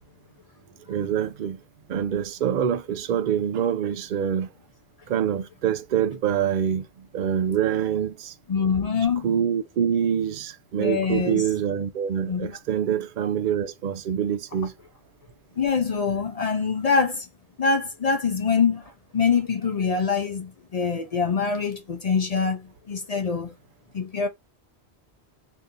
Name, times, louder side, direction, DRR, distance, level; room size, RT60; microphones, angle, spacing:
voice 1, 0.9-1.6 1.9-4.5 5.1-8.3 9.2-14.7, right 9 dB, 55° right, 0.6 m, -25 dB
voice 2, 8.5-9.2 10.8-11.4 12.2-12.5 15.6-17.3 17.6-23.5 23.9-24.3, left 5 dB, 50° left, 0.5 m, -24 dB
2.7 x 2.6 x 3.6 m
omnidirectional pair, 1.1 m